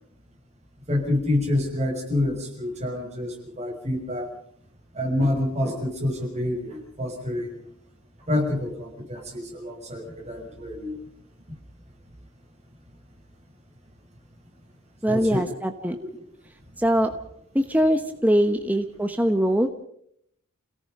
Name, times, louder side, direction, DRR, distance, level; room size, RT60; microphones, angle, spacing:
voice 1, 0.9-4.3 4.9-7.6 8.3-11.0 15.1-15.4, left 1 dB, 30° right, 0 dB, 6.1 m, -27 dB
voice 2, 15.0-16.0 16.8-17.1 17.5-19.7, equal, 5° right, 6 dB, 1.0 m, -22 dB
29.0 x 18.0 x 5.3 m, 0.68 s
head